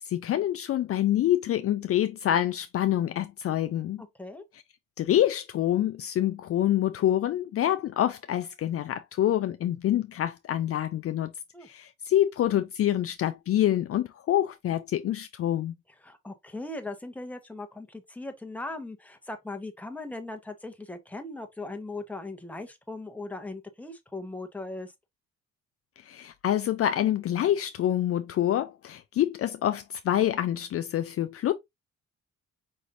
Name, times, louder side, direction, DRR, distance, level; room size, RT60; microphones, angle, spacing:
voice 1, 0.1-4.0 5.0-11.3 11.6-15.7 26.0-31.5, left 12 dB, 50° left, 0.4 m, -26 dB
voice 2, 16.0-24.9, left 2 dB, 5° left, 1.0 m, -39 dB
5.2 x 3.1 x 2.6 m
cardioid pair, 90°, 30 cm